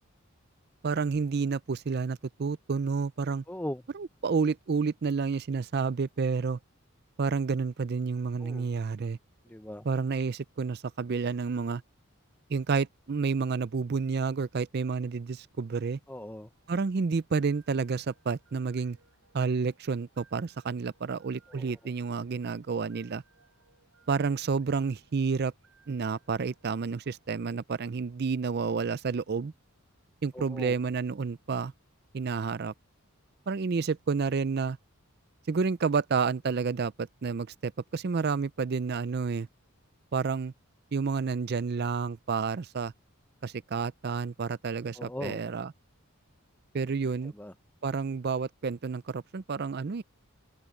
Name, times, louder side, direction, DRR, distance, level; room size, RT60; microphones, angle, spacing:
voice 1, 0.8-3.4 3.9-6.6 7.2-9.2 9.8-11.8 12.5-16.0 16.7-19.0 19.3-23.2 24.1-25.5 25.9-29.5 30.2-31.7 32.1-32.7 33.5-34.8 35.5-39.5 40.1-40.5 40.9-42.9 43.4-45.7 46.7-47.3 47.8-50.0, right 5 dB, 45° right, 0.4 m, -30 dB
voice 2, 3.5-3.8 8.4-8.7 9.4-9.9 16.1-16.5 21.5-21.8 30.3-30.7 45.0-45.4 47.3-47.5, left 1 dB, 10° left, 0.8 m, -39 dB
sound 1, 16.2-28.3, right 5 dB, 70° right, 6.9 m, -67 dB
open air
head